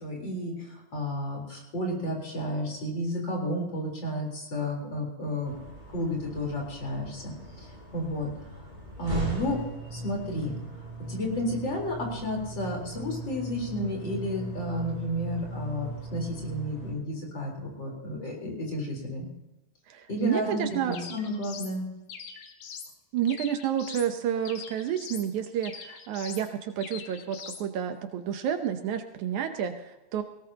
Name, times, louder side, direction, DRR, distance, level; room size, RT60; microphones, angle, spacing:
voice 1, 0.0-5.6 5.9-8.3 9.0-9.6 9.9-10.5 11.1-19.3 20.1-21.9, left 1 dB, 35° left, -1 dB, 4.5 m, -32 dB
sound 1, 5.4-16.9, right 1 dB, 15° right, 4.7 m, -39 dB
voice 2, 19.9-21.2 23.1-30.2, right 9 dB, 75° right, 7 dB, 2.2 m, -30 dB
sound 2, 20.9-21.8 22.1-22.9 23.3-24.1 24.5-25.3 25.6-26.5 26.8-27.6, left 7 dB, 85° left, 3.0 m, -43 dB
19.5 x 17.5 x 2.9 m, 1.0 s
omnidirectional pair, 3.7 m